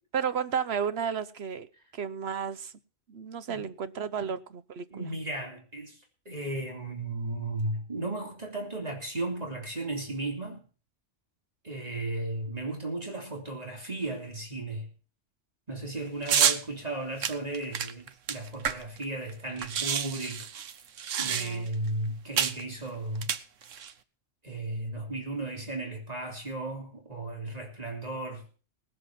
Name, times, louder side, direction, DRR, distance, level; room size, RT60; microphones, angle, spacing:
voice 1, 0.1-1.7 1.9-2.7 3.1-5.1 21.2-21.7, right 7 dB, 60° right, 1.1 m, -33 dB
voice 2, 4.9-10.6 11.6-14.9 15.7-20.5 21.2-23.3 24.4-28.6, right 2 dB, 30° right, 3.3 m, -35 dB
sound 1, 16.3-16.6 17.2-19.0 19.3-19.4 19.6-21.7 22.4-22.6 23.2-23.9, right 8 dB, 90° right, 1.3 m, -28 dB
19.0 x 7.9 x 5.8 m
omnidirectional pair, 1.3 m